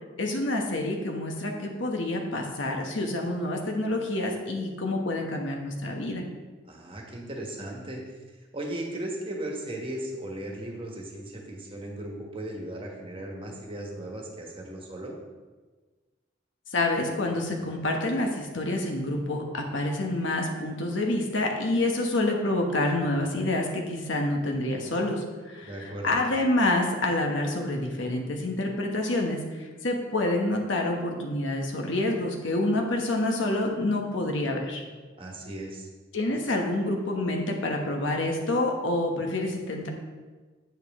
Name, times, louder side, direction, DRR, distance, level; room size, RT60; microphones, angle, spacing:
voice 1, 0.2-6.2 16.7-34.8 36.1-39.9, left 1 dB, 75° left, 2 dB, 1.1 m, -27 dB
voice 2, 6.7-8.1 8.5-15.1 25.6-26.1 35.2-35.9, right 1 dB, 30° right, 0 dB, 1.4 m, -37 dB
8.1 x 7.4 x 3.6 m, 1.3 s
head